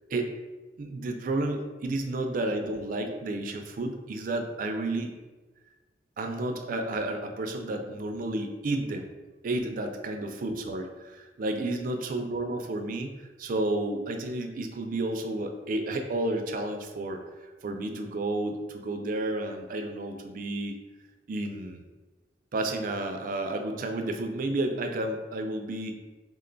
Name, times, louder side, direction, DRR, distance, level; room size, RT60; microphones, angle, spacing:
voice 1, 0.8-5.1 6.2-9.1 9.4-13.1 13.4-20.7 21.3-21.8 22.5-26.0, right 2 dB, 50° right, 5 dB, 0.4 m, -31 dB
3.6 x 2.2 x 3.8 m, 1.2 s
head